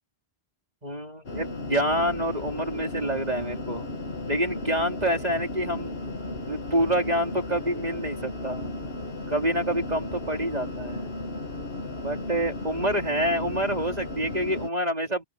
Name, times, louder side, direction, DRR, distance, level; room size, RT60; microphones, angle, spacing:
voice 1, 0.8-3.9 4.3-5.9 6.5-8.7 9.3-11.1 12.0-15.2, right 1 dB, 40° right, 4.5 m, -27 dB
sound 1, 1.3-14.7, left 2 dB, 70° left, 2.3 m, -35 dB
open air
omnidirectional pair, 1.1 m